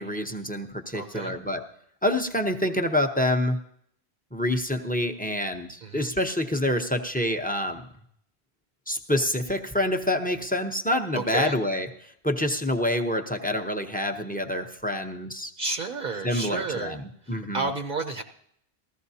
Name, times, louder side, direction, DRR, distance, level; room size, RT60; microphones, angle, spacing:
voice 1, 0.0-1.6 2.0-3.6 4.3-7.8 8.9-11.9 12.2-15.5 16.2-17.0 17.3-17.7, left 1 dB, 10° left, 6 dB, 0.6 m, -27 dB
voice 2, 0.9-1.4 5.8-6.1 11.1-11.6 15.6-17.0 17.2-18.2, right 3 dB, 55° right, 5 dB, 0.8 m, -31 dB
20.0 x 14.5 x 2.8 m, 0.71 s
omnidirectional pair, 1.1 m